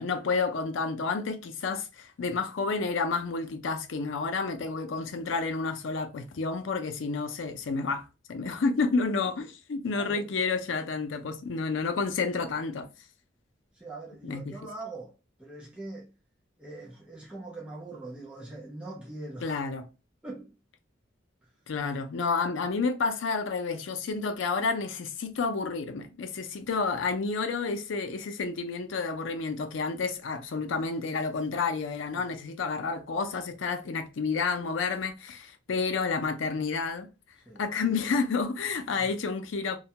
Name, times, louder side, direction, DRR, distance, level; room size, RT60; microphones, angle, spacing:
voice 1, 0.0-12.9 14.2-14.5 19.4-19.9 21.7-37.1 37.6-39.8, left 4 dB, 75° left, 0.5 m, -30 dB
voice 2, 9.9-10.3 11.2-11.3 13.7-15.1 15.4-16.1 16.6-19.6 20.2-20.5 21.4-21.5 32.1-32.2 37.5-37.6 39.0-39.1, right 2 dB, 5° right, 0.4 m, -42 dB
2.3 x 2.1 x 2.8 m
head